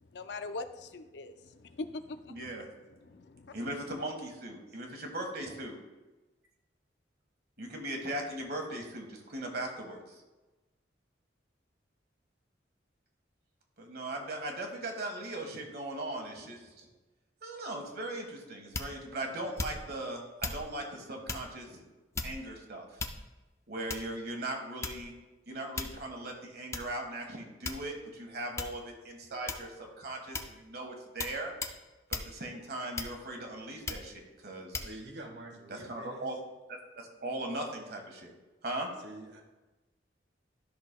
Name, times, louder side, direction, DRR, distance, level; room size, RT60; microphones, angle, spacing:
voice 1, 0.1-2.4 3.0-3.6, left 3 dB, 70° left, 10 dB, 0.5 m, -42 dB
voice 2, 2.3-2.7 3.5-5.7 7.6-10.1 13.8-16.9 17.4-21.8 22.2-23.0 23.7-25.1 25.5-31.5 32.1-34.9 35.7-36.4 36.7-38.3 38.6-38.9, right 1 dB, 60° right, 2 dB, 1.5 m, -39 dB
sound 1, 18.7-19.1 19.6-20.0 20.4-20.7 21.3-21.5 22.1-22.5 23.0-23.4 23.9-24.2 24.8-25.2 25.8-26.1 26.7-26.9 27.6-28.1 28.6-28.8 29.5-29.8 30.3-30.6 31.2-31.4 31.6-31.8 32.1-32.3 33.0-33.4 33.9-34.1 34.7-34.9, left 3 dB, 15° left, 0.4 m, -37 dB
voice 3, 34.8-36.3 39.0-39.4, right 1 dB, 75° right, 2 dB, 1.4 m, -46 dB
13.0 x 6.0 x 2.2 m, 1.1 s
head